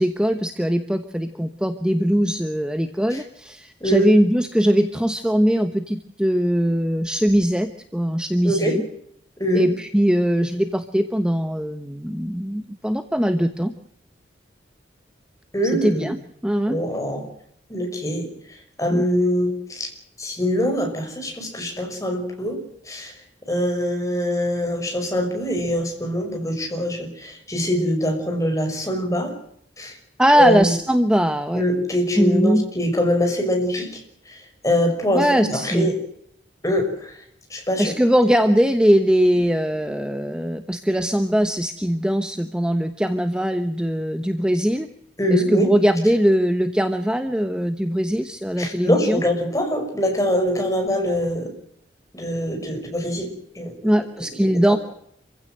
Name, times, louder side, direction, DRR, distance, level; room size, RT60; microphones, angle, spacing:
voice 1, 0.0-8.8 9.5-13.7 15.8-16.8 18.9-19.1 30.2-31.6 32.2-32.7 35.1-35.9 37.8-44.9 45.3-49.2 53.8-54.8, equal, 5° right, 9 dB, 1.0 m, -21 dB
voice 2, 3.8-4.1 8.4-8.8 9.4-9.7 15.5-16.1 16.7-17.2 17.7-18.3 18.8-19.9 20.2-22.6 22.9-23.1 23.5-29.3 29.8-30.0 30.3-30.7 31.5-34.0 34.3-36.0 36.6-37.1 37.5-37.9 45.2-45.7 48.6-51.5 52.1-53.9 54.2-54.8, equal, 20° left, 3 dB, 5.9 m, -23 dB
27.0 x 16.0 x 7.8 m, 0.73 s
head